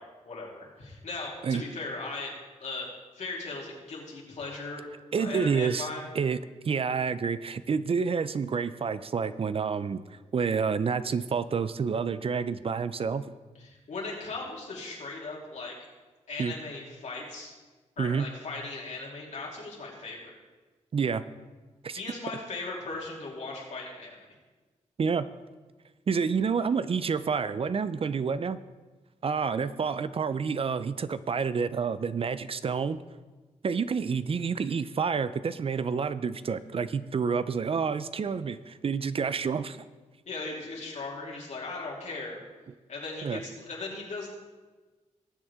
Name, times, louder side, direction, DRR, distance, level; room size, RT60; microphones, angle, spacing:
voice 1, 0.0-4.9 5.2-6.1 13.6-15.8 16.3-17.5 18.0-20.4 21.9-24.2 40.3-42.4 42.9-44.3, left 3 dB, 70° left, -3 dB, 3.2 m, -38 dB
voice 2, 5.1-5.9 6.1-6.4 6.6-13.3 16.4-16.5 18.0-18.3 20.9-21.2 21.8-22.0 25.0-25.3 26.1-28.6 29.2-33.0 33.6-39.8 43.2-43.4, right 5 dB, 50° right, 14 dB, 0.5 m, -28 dB
19.5 x 7.8 x 3.7 m, 1.3 s
cardioid pair, 90°, 12 cm